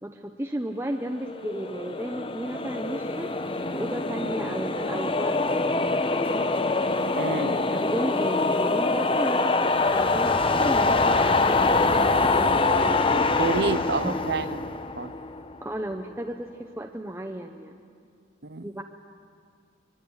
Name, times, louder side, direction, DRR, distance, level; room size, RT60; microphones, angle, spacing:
voice 1, 0.0-3.3 3.7-5.8 7.6-13.6 14.0-14.2 15.6-17.8 18.6-18.8, right 1 dB, 10° right, 3 dB, 0.9 m, -34 dB
sound 1, 1.2-15.6, left 3 dB, 25° left, 0.9 m, -24 dB
voice 2, 7.2-7.6 13.4-14.7 15.0-15.1 18.4-18.7, right 3 dB, 60° right, 13 dB, 0.8 m, -29 dB
24.5 x 23.0 x 9.7 m, 2.1 s
head